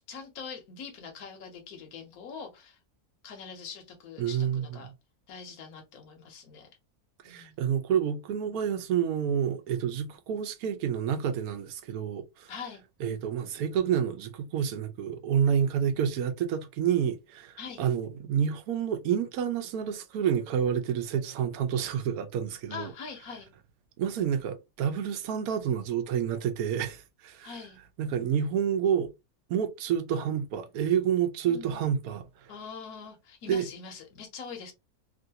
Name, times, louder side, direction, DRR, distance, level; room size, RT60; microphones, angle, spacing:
voice 1, 0.1-2.8 3.2-4.9 5.3-6.7 7.2-7.6 12.5-12.8 17.6-17.8 22.7-23.5 27.4-27.8 31.5-31.9 32.5-34.7, left 6 dB, 75° left, 1.2 m, -43 dB
voice 2, 4.2-4.6 7.2-12.5 13.0-22.9 24.0-27.5 28.0-29.1 29.5-32.3 33.5-33.7, right 8 dB, 80° right, 1.1 m, -29 dB
3.0 x 2.5 x 2.7 m
omnidirectional pair, 1.6 m